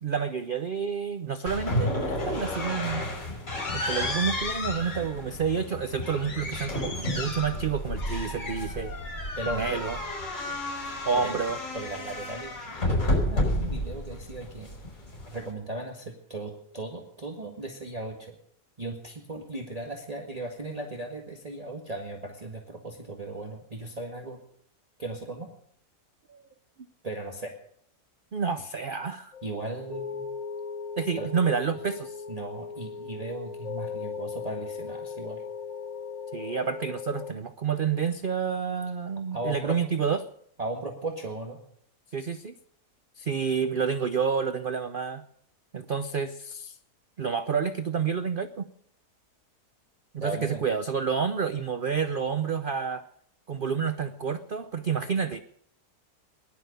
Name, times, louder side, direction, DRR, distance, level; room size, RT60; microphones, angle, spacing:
voice 1, 0.0-3.0 3.7-8.9 9.5-10.0 11.1-11.6 26.3-26.4 28.3-29.3 31.0-32.2 36.3-40.3 42.1-42.6 43.2-45.2 45.7-46.8 47.2-48.7 50.1-53.0 53.5-55.4, right 6 dB, 50° right, 10 dB, 0.6 m, -29 dB
sound 1, 1.5-15.5, left 1 dB, 50° left, 5.8 m, -31 dB
voice 2, 9.4-9.8 11.1-11.4 11.7-14.7 15.3-18.3 18.8-24.4 25.0-25.5 27.0-27.5 29.4-30.3 31.2-31.3 32.3-35.4 39.3-39.8 40.6-41.6 50.2-50.6, right 2 dB, 25° right, 1 dB, 1.8 m, -37 dB
sound 2, 29.3-37.3, left 6 dB, 30° left, 1.0 m, -38 dB
18.5 x 11.5 x 6.7 m, 0.69 s
omnidirectional pair, 1.8 m